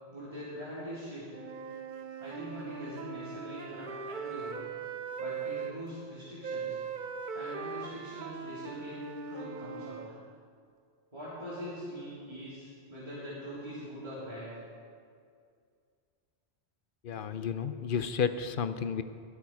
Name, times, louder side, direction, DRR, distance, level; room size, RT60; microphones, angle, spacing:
voice 1, 0.1-1.3 2.2-4.6 5.2-6.8 7.3-10.2 11.1-14.5, equal, 30° right, -11 dB, 3.8 m, -42 dB
Wind instrument woodwind instrument, 1.3-5.8 6.4-10.1, right 6 dB, 50° right, 0.7 m, -40 dB
voice 2, 17.0-19.0, left 7 dB, 55° left, 11 dB, 0.7 m, -32 dB
22.0 x 8.5 x 4.9 m, 2.2 s
omnidirectional pair, 1.2 m